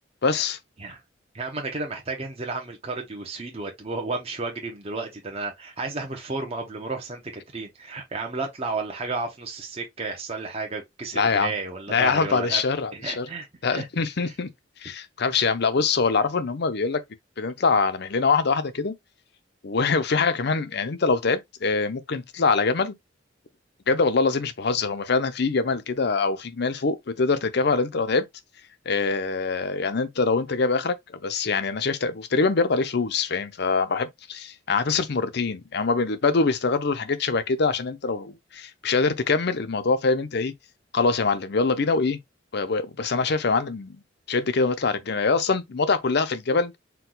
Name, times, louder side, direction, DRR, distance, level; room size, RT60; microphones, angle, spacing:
voice 1, 0.2-0.6 11.1-11.5 11.9-13.3 13.6-14.5 14.8-17.0 17.4-18.9 19.6-22.9 23.9-28.3 28.9-31.0 31.2-40.5 40.9-42.2 42.5-44.0 44.3-46.7, left 4 dB, 60° left, 0.6 m, -24 dB
voice 2, 1.3-7.2 7.5-12.6 13.0-13.9, right 3 dB, 30° right, 0.8 m, -32 dB
4.5 x 2.3 x 3.9 m
head